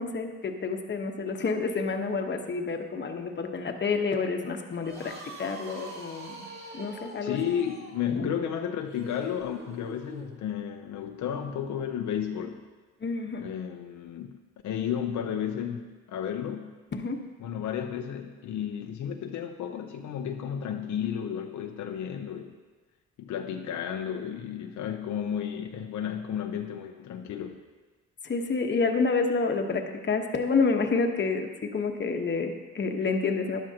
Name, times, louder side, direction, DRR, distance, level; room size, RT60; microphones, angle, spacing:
voice 1, 0.0-6.5 6.7-7.4 8.1-8.3 13.0-13.5 16.9-17.2 28.2-33.6, left 4 dB, 35° left, 4 dB, 1.1 m, -29 dB
sound 1, 4.7-10.4, right 1 dB, 35° right, 2.9 m, -44 dB
voice 2, 7.2-12.6 13.4-14.4 14.6-16.8 17.4-22.6 23.2-27.6, left 8 dB, 75° left, 4 dB, 0.7 m, -33 dB
12.5 x 10.5 x 2.9 m, 1.3 s
cardioid pair, 90°, 30 cm